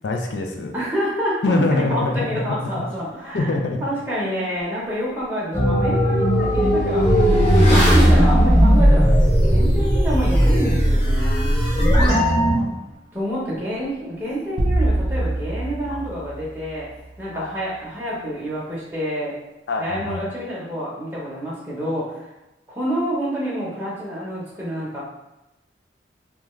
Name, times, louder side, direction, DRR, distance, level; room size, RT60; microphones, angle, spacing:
voice 1, 0.0-0.7 1.4-2.4 2.8-2.9 3.3-3.8 12.4-12.8 15.9-16.0 17.3-17.6 19.7-20.2, left 2 dB, 80° left, 2 dB, 0.4 m, -24 dB
voice 2, 0.7-3.5 3.8-9.1 9.4-11.5 13.1-16.9 17.2-19.4 19.8-22.3 22.7-25.0, equal, 10° right, -7 dB, 0.7 m, -28 dB
Motorcycle / Accelerating revving vroom, 4.6-4.7 5.1-15.1 15.3-15.5, equal, 45° left, 1.1 m, -33 dB
sound 1, 5.5-12.5, equal, 20° left, 0.8 m, -16 dB
sound 2, 14.6-17.1, right 1 dB, 60° right, 0.4 m, -24 dB
2.4 x 2.3 x 3.0 m, 0.96 s
head